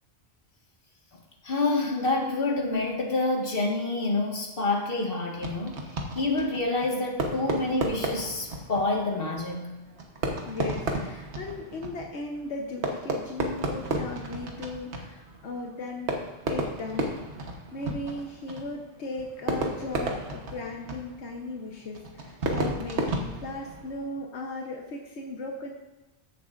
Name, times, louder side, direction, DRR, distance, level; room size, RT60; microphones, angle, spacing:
voice 1, 1.4-5.9 6.1-9.7, left 2 dB, 55° left, 0 dB, 1.9 m, -27 dB
Fireworks, 5.4-24.2, right 2 dB, 85° right, 1.4 m, -33 dB
voice 2, 10.4-16.2 16.5-17.3 17.7-25.7, left 2 dB, 85° left, 1 dB, 1.3 m, -37 dB
14.5 x 7.6 x 2.5 m, 1.1 s
omnidirectional pair, 1.1 m